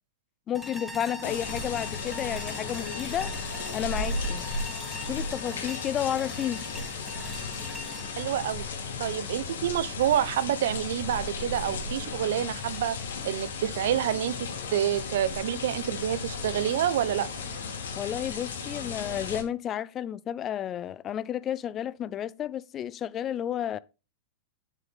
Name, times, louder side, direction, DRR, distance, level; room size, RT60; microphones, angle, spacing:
voice 1, 0.5-3.3 3.7-4.4 5.0-6.7 18.0-23.8, left 10 dB, 30° left, 0.5 m, -32 dB
sound 1, 0.5-9.6, left 1 dB, 5° left, 1.5 m, -42 dB
sound 2, 1.2-19.4, left 4 dB, 80° left, 2.7 m, -35 dB
voice 2, 8.2-8.7 9.0-13.0 13.2-14.3 14.7-17.3, right 11 dB, 70° right, 0.9 m, -28 dB
11.0 x 6.4 x 3.5 m
hypercardioid pair, 120°, 0 cm